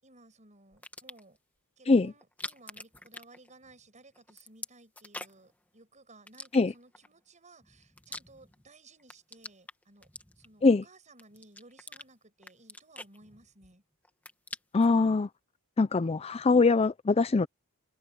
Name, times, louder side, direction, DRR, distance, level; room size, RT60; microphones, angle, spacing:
voice 1, 0.0-1.4 1.8-10.1 10.4-13.8, right 2 dB, 35° right, 7.4 m, -57 dB
sound 1, 0.7-1.4 2.2-3.9 4.1-5.5 6.3-7.1 7.6-8.7 9.0-10.7 11.2-12.1 12.4-13.7 14.0-14.9, left 2 dB, 5° left, 1.6 m, -45 dB
voice 2, 14.7-15.3 15.8-17.5, left 3 dB, 25° left, 0.4 m, -23 dB
head